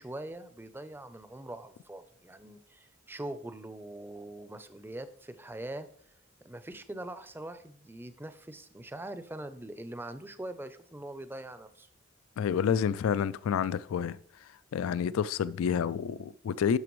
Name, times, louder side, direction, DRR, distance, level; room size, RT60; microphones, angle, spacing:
voice 1, 0.0-5.9 6.4-11.9, right 1 dB, 10° right, 0.5 m, -42 dB
voice 2, 12.4-14.2 14.7-16.8, left 7 dB, 80° left, 0.3 m, -29 dB
11.0 x 6.8 x 3.1 m
head